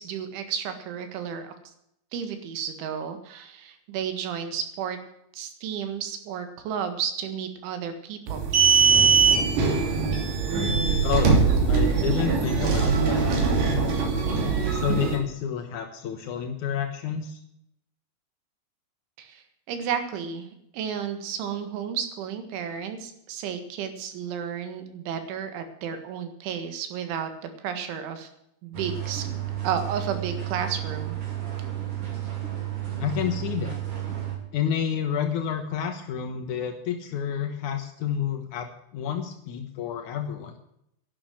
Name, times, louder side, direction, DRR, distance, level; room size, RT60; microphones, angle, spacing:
voice 1, 0.0-1.5 2.1-5.0 5.3-8.5 19.2-20.5 20.7-28.3 28.6-29.3 29.6-31.2, right 8 dB, 80° right, 8 dB, 4.1 m, -32 dB
sound 1, 8.3-15.2, right 5 dB, 50° right, 4.0 m, -21 dB
voice 2, 11.0-11.4 11.7-13.3 14.7-17.4 33.0-33.8 34.5-40.5, left 8 dB, 80° left, 5 dB, 1.7 m, -29 dB
sound 2, 28.7-34.4, right 12 dB, 35° right, 3.5 m, -32 dB
11.5 x 11.5 x 7.7 m, 0.76 s
omnidirectional pair, 5.4 m